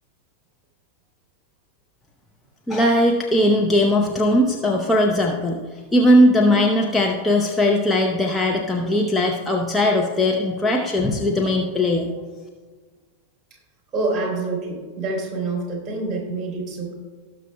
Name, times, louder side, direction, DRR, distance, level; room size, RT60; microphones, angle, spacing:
voice 1, 2.7-5.6 5.9-12.1, left 1 dB, 10° left, 0 dB, 0.8 m, -19 dB
voice 2, 13.9-16.9, right 3 dB, 25° right, -1 dB, 3.0 m, -26 dB
18.5 x 6.5 x 2.3 m, 1.4 s
figure-of-eight pair, 90°, 0 cm